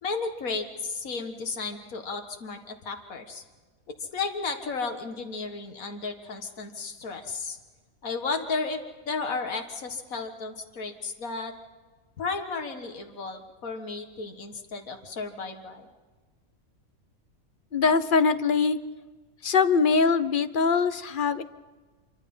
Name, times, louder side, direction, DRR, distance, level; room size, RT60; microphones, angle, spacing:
voice 1, 0.0-3.4 4.0-7.6 8.0-11.5 12.2-15.9, left 4 dB, 75° left, 4 dB, 2.1 m, -33 dB
voice 2, 17.7-18.8 19.4-21.4, left 5 dB, 45° left, 12 dB, 0.8 m, -22 dB
26.0 x 24.0 x 5.5 m, 1.4 s
omnidirectional pair, 1.5 m